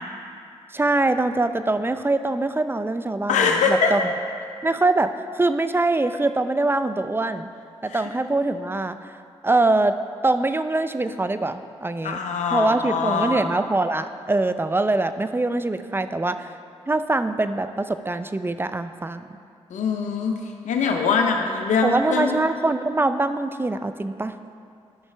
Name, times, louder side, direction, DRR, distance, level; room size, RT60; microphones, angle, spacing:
voice 1, 0.7-4.1 4.6-7.5 7.8-9.1 9.4-9.9 10.2-12.2 12.5-16.5 16.9-19.2 21.8-24.4, right 2 dB, 20° right, 11 dB, 0.5 m, -23 dB
voice 2, 3.3-3.9 7.9-8.0 12.0-13.5 19.7-20.3 20.6-22.4, left 5 dB, 85° left, 3 dB, 0.7 m, -22 dB
12.0 x 5.8 x 3.3 m, 2.4 s
supercardioid pair, 50°, 12 cm